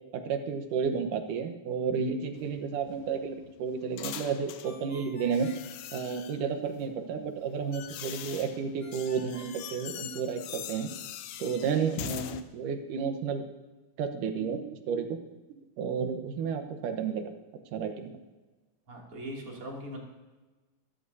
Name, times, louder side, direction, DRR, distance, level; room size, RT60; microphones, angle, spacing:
voice 1, 0.1-5.5 5.9-10.9 11.4-13.4 14.0-15.2 15.5-17.3 17.7-18.1, right 6 dB, 85° right, 7 dB, 2.7 m, -32 dB
sound 1, 2.3-4.8 5.3-6.5 7.3-12.4, left 11 dB, 85° left, 2.3 m, -42 dB
Ringtone, 4.6-6.6 8.8-10.7, left 2 dB, 45° left, 4.5 m, -52 dB
voice 2, 18.9-20.0, equal, 45° right, -2 dB, 3.5 m, -40 dB
22.0 x 13.0 x 2.8 m, 1.2 s
omnidirectional pair, 3.6 m